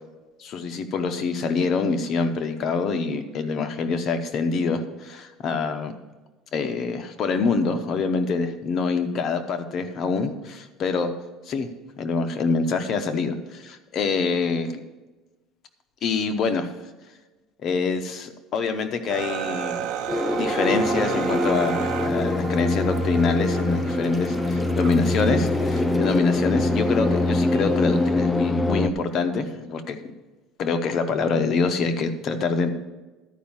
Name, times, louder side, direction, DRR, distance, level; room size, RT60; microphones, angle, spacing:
voice 1, 0.4-5.9 6.5-11.1 11.5-11.7 12.0-14.8 16.0-16.7 17.6-19.9 20.3-30.0 30.6-32.7, left 4 dB, 40° left, 7 dB, 0.8 m, -25 dB
sound 1, 19.1-28.2, right 9 dB, 65° right, 0.9 m, -34 dB
sound 2, 20.1-28.9, left 2 dB, 10° left, 0.4 m, -24 dB
12.0 x 5.2 x 7.2 m, 1.2 s
cardioid pair, 155°, 0 cm